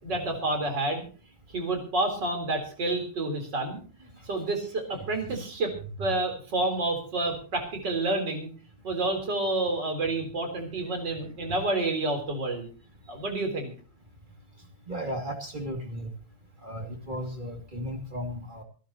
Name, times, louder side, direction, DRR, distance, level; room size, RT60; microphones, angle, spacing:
voice 1, 0.0-1.1 1.5-3.8 4.3-5.7 6.0-8.5 8.8-12.7 13.1-13.7, right 2 dB, 50° right, 4 dB, 4.5 m, -29 dB
voice 2, 14.9-16.1 16.6-18.6, equal, 20° right, 3 dB, 2.5 m, -35 dB
26.0 x 11.5 x 3.0 m, 0.39 s
omnidirectional pair, 2.4 m